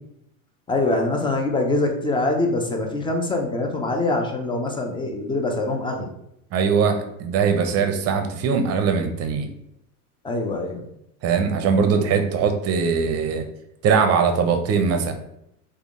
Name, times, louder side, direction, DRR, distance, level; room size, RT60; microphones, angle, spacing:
voice 1, 0.7-6.1 10.2-10.8, left 2 dB, 10° left, 2 dB, 0.5 m, -24 dB
voice 2, 6.5-9.5 11.2-13.4 13.8-15.1, right 6 dB, 35° right, 6 dB, 0.6 m, -21 dB
3.5 x 2.3 x 3.6 m, 0.80 s
supercardioid pair, 110°, 44 cm